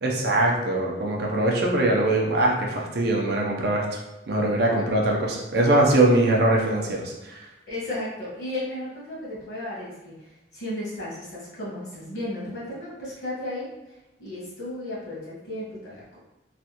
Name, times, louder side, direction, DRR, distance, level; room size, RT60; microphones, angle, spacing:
voice 1, 0.0-4.0 4.3-7.4, right 1 dB, 55° right, -1 dB, 0.6 m, -22 dB
voice 2, 7.7-16.2, left 1 dB, 60° left, -7 dB, 1.4 m, -34 dB
3.2 x 2.3 x 2.8 m, 1.0 s
head